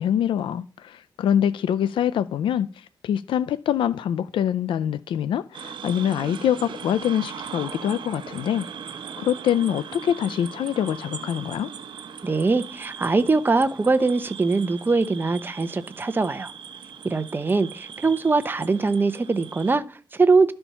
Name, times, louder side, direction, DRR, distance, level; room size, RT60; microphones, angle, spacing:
voice 1, 0.0-8.7 9.2-11.7, left 9 dB, 85° left, 0.4 m, -24 dB
sound 1, 5.5-19.7, right 7 dB, 70° right, 1.0 m, -39 dB
voice 2, 12.2-16.5 17.0-20.5, right 3 dB, 25° right, 0.8 m, -22 dB
12.0 x 4.4 x 5.6 m
cardioid pair, 95°, 8 cm